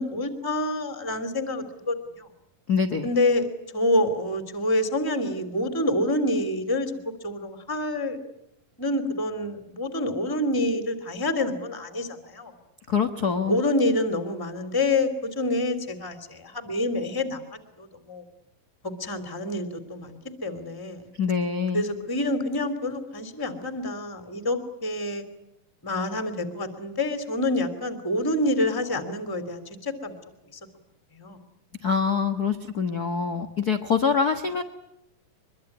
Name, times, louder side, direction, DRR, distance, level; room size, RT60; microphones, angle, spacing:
voice 1, 0.0-2.3 3.0-3.5 3.7-6.9 7.2-8.2 8.8-12.5 13.4-18.2 18.8-21.1 21.7-25.3 25.8-30.2 30.5-30.6 31.1-31.4, left 1 dB, 5° left, 8 dB, 2.3 m, -27 dB
voice 2, 2.7-3.1 12.9-13.6 21.2-21.8 31.8-34.6, left 6 dB, 90° left, 7 dB, 0.8 m, -25 dB
24.0 x 23.0 x 9.8 m, 0.82 s
omnidirectional pair, 4.2 m